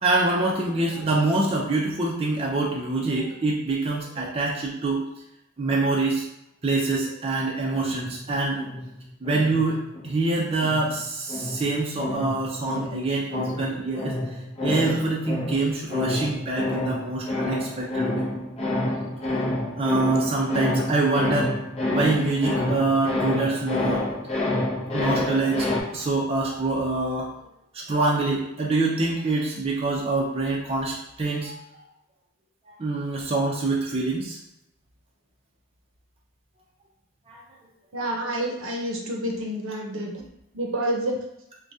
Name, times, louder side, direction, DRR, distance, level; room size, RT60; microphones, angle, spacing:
voice 1, 0.0-5.1 5.6-6.2 6.6-8.6 9.2-14.2 14.6-18.3 19.8-21.5 21.9-24.1 24.5-24.6 24.9-27.3 27.7-31.6 32.7-34.4 37.3-37.4, right 3 dB, 30° right, -3 dB, 0.5 m, -25 dB
sound 1, 7.8-10.2 10.6-25.8, left 1 dB, 30° left, 0.6 m, -29 dB
voice 2, 37.9-40.1 40.5-41.2, right 1 dB, 65° right, 0 dB, 0.7 m, -28 dB
4.6 x 2.2 x 2.7 m, 0.83 s
head